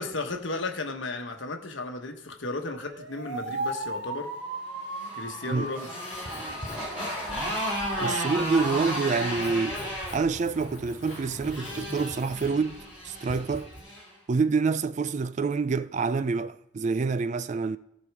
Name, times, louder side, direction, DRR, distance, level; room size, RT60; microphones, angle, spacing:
voice 1, 0.0-4.3 5.1-5.9 8.0-8.2, left 2 dB, 65° left, 1.3 m, -34 dB
sound 1, 2.6-9.5, right 2 dB, 55° right, 1.5 m, -37 dB
Motorcycle, 4.7-14.1, equal, 5° right, 4.7 m, -35 dB
Writing, 6.1-13.8, equal, 40° left, 3.0 m, -45 dB
voice 2, 8.0-9.8 10.1-13.7 14.3-17.8, right 4 dB, 35° right, 0.3 m, -27 dB
15.5 x 5.4 x 4.8 m
head